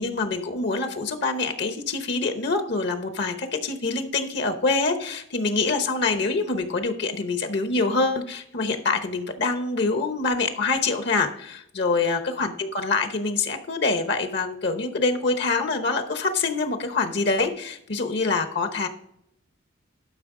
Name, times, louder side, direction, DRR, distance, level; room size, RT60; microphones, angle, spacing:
voice 1, 0.0-18.9, left 3 dB, 60° left, 7 dB, 0.9 m, -25 dB
12.0 x 5.4 x 3.7 m, 0.74 s
head